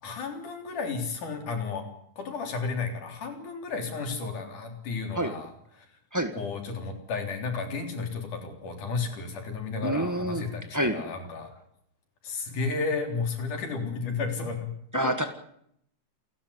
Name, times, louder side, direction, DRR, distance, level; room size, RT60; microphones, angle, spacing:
voice 1, 0.0-1.8 2.2-5.5 5.8-5.9 6.3-11.5 12.2-14.7 15.0-15.1, left 4 dB, 90° left, 5 dB, 5.2 m, -33 dB
voice 2, 9.8-11.0 14.9-15.2, right 1 dB, 20° right, 7 dB, 0.5 m, -27 dB
28.5 x 12.0 x 10.0 m, 0.71 s
omnidirectional pair, 3.5 m